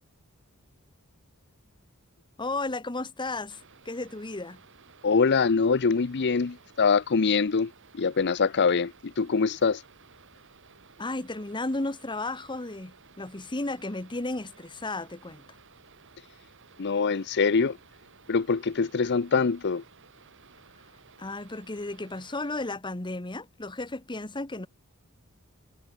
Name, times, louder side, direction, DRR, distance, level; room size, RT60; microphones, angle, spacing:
voice 1, 2.4-4.6 11.0-15.6 21.2-24.7, left 2 dB, 20° left, 1.3 m, -34 dB
sound 1, 3.5-22.8, right 5 dB, 55° right, 3.8 m, -56 dB
voice 2, 5.0-9.8 16.8-17.8 18.3-19.8, left 5 dB, 50° left, 0.6 m, -24 dB
head